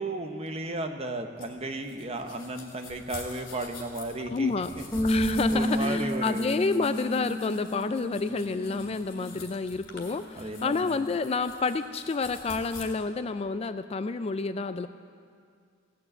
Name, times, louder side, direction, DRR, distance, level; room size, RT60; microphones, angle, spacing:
voice 1, 0.0-4.8 5.1-6.6 8.1-8.3 8.7-8.8 9.1-9.4 10.3-10.8, right 2 dB, 30° right, 6 dB, 0.9 m, -35 dB
sound 1, 1.4-12.8, left 3 dB, 80° left, 2.9 m, -45 dB
voice 2, 4.3-4.7 5.0-14.9, left 4 dB, 30° left, 11 dB, 0.3 m, -29 dB
sound 2, 4.9-9.5 9.8-11.2, equal, 15° left, 1.3 m, -32 dB
17.0 x 6.7 x 8.7 m, 2.2 s
head